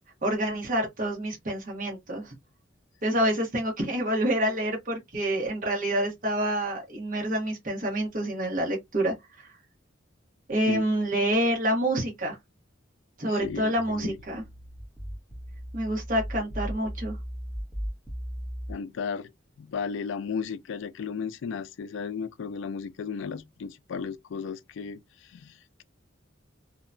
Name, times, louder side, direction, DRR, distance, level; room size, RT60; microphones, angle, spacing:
voice 1, 0.2-2.3 3.0-9.5 10.5-12.4 13.2-14.4 15.7-17.2, right 1 dB, 45° right, 1.1 m, -27 dB
voice 2, 13.3-14.2 18.7-19.3 19.6-25.8, left 6 dB, 70° left, 0.3 m, -35 dB
sound 1, 13.4-18.7, equal, 15° right, 0.9 m, -37 dB
2.8 x 2.2 x 2.4 m
head